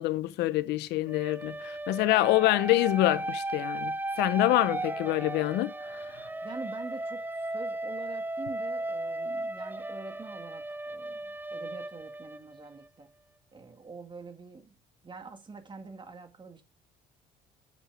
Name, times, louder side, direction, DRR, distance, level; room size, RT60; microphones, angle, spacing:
voice 1, 0.0-5.7, left 17 dB, 85° left, 0.6 m, -26 dB
sound 1, 1.1-12.9, right 2 dB, 10° right, 0.5 m, -35 dB
voice 2, 4.8-5.3 6.4-13.1 13.5-14.7 15.0-16.6, right 4 dB, 30° right, 2.2 m, -45 dB
9.3 x 6.8 x 4.9 m
cardioid pair, 110°, 17 cm